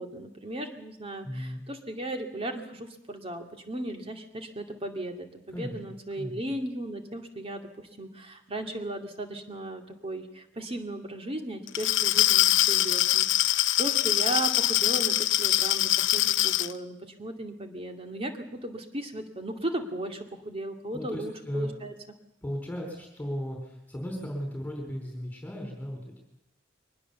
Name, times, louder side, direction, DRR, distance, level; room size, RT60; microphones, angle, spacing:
voice 1, 0.0-21.9, right 1 dB, 30° right, 5 dB, 2.3 m, -36 dB
voice 2, 1.2-1.6 5.5-5.8 6.2-6.4 20.9-21.7 22.4-26.2, equal, 10° left, 1 dB, 4.4 m, -36 dB
Glass, 11.7-16.7, left 14 dB, 80° left, 0.7 m, -23 dB
23.0 x 19.5 x 7.0 m, 0.80 s
head